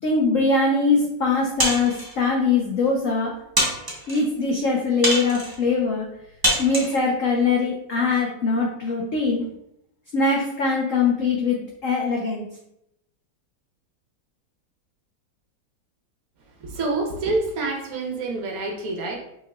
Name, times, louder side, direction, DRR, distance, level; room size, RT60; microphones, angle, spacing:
voice 1, 0.0-3.3 4.1-6.1 6.6-9.5 10.1-12.5, left 4 dB, 70° left, -1 dB, 0.8 m, -22 dB
sound 1, 1.6-2.1 2.9-3.0 3.6-4.2 5.0-5.6 6.4-7.0, right 1 dB, 25° right, 0.5 m, -24 dB
voice 2, 16.6-19.2, right 3 dB, 60° right, 1 dB, 1.1 m, -27 dB
5.5 x 3.3 x 2.2 m, 0.78 s
omnidirectional pair, 2.0 m